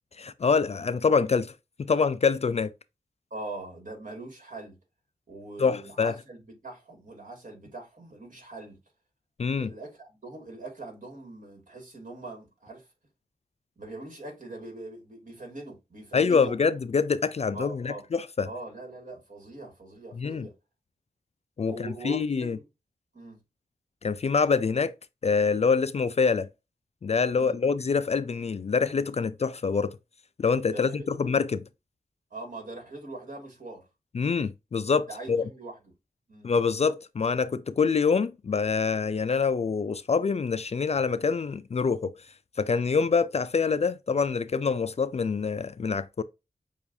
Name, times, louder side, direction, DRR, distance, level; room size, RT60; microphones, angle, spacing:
voice 1, 0.2-1.5 1.8-2.7 5.6-6.1 9.4-9.7 16.1-18.5 20.1-20.5 21.6-22.6 24.0-24.9 25.2-26.5 27.0-30.0 30.4-31.6 34.1-35.4 36.4-42.1 42.6-46.2, left 5 dB, 45° left, 0.4 m, -25 dB
voice 2, 3.3-4.8 5.3-8.8 9.6-12.9 13.8-16.5 17.5-18.0 18.5-20.5 21.7-22.6 23.1-23.4 27.3-27.6 30.7-31.2 32.3-33.9 35.1-35.7 36.3-36.5, right 2 dB, 55° right, 2.1 m, -42 dB
7.0 x 2.5 x 2.6 m
cardioid pair, 55°, 16 cm